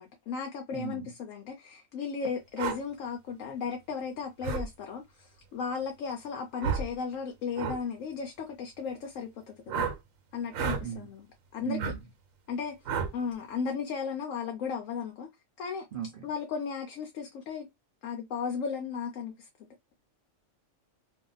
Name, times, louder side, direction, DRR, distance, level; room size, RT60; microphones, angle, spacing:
voice 1, 0.0-9.9 10.3-11.3 11.5-11.9 12.5-12.8 13.1-15.3 15.6-15.8 16.2-17.7 18.0-19.7, left 6 dB, 80° left, 1.0 m, -35 dB
voice 2, 0.7-1.1 10.8-11.1 11.6-12.0 15.9-16.3, right 9 dB, 55° right, 0.6 m, -37 dB
sound 1, 2.6-2.8 4.4-4.7 6.6-6.9 7.5-7.8 9.7-10.0 10.5-10.8 11.8-12.0 12.9-13.1, right 6 dB, 85° right, 1.1 m, -31 dB
2.8 x 2.1 x 3.8 m
omnidirectional pair, 1.3 m